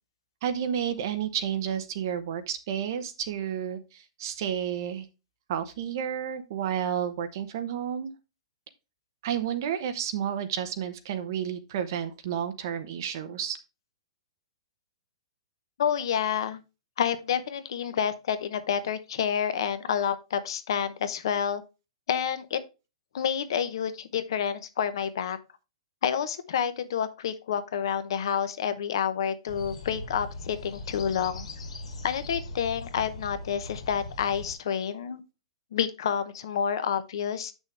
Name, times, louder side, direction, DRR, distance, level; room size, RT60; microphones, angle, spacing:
voice 1, 0.4-5.1 5.5-8.1 9.2-13.6, right 9 dB, 35° right, 0.8 m, -31 dB
voice 2, 15.8-16.6 17.0-21.6 22.1-22.6 23.1-25.4 26.0-31.5 32.0-35.2 35.7-37.5, left 8 dB, 45° left, 0.8 m, -29 dB
sound 1, 29.5-34.5, left 2 dB, 70° left, 2.7 m, -40 dB
7.9 x 6.3 x 3.2 m
hypercardioid pair, 180°, 3 cm